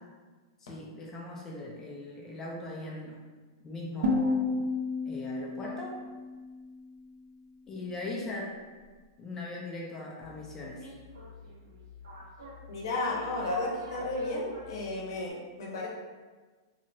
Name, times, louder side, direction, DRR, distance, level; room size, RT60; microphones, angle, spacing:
voice 1, 0.6-3.2 3.6-4.7 5.1-6.0 7.7-8.6 9.2-10.8, left 2 dB, 20° left, -2 dB, 0.4 m, -39 dB
sound 1, 4.0-7.0, left 3 dB, 65° right, 0.4 m, -31 dB
sound 2, 10.2-15.3, left 1 dB, 85° right, 1.0 m, -48 dB
voice 2, 12.7-15.9, left 2 dB, 70° left, -3 dB, 0.7 m, -33 dB
2.8 x 2.1 x 2.6 m, 1.4 s
hypercardioid pair, 145°, 2 cm